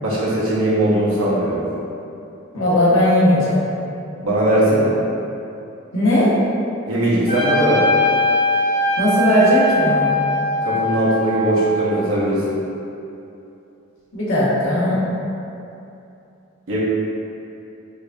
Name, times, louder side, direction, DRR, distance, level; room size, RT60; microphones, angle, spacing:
voice 1, 0.0-1.6 4.2-5.0 6.9-7.8 10.6-12.6 16.7-16.8, right 1 dB, 85° right, -8 dB, 0.8 m, -19 dB
voice 2, 2.5-3.6 5.9-6.3 9.0-10.1 14.1-15.0, left 1 dB, 75° left, -8 dB, 1.1 m, -17 dB
Trumpet, 7.3-12.0, left 2 dB, 20° left, 1.0 m, -21 dB
4.6 x 2.4 x 2.6 m, 2.8 s
head